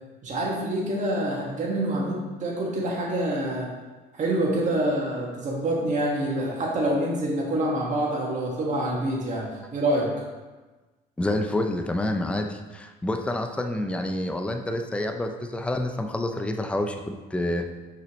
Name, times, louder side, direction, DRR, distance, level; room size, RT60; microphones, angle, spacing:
voice 1, 0.2-3.7 4.2-9.5 9.7-10.1, right 1 dB, 45° right, -3 dB, 1.8 m, -26 dB
voice 2, 11.2-17.6, left 1 dB, 5° left, 4 dB, 0.5 m, -28 dB
6.0 x 5.9 x 3.2 m, 1.2 s
cardioid pair, 110°, 17 cm